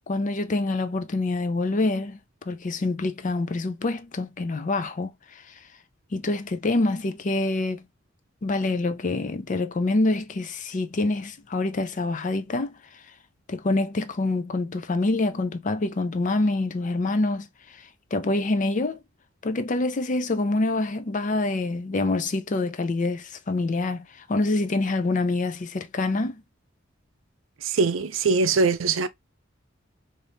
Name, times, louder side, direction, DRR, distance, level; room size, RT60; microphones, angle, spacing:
voice 1, 0.1-2.2 2.5-5.1 6.1-7.8 8.4-12.7 13.5-17.5 18.1-19.0 19.4-26.4, left 2 dB, 40° left, 0.5 m, -26 dB
voice 2, 27.6-29.1, right 4 dB, 75° right, 0.5 m, -22 dB
3.9 x 2.6 x 3.4 m
head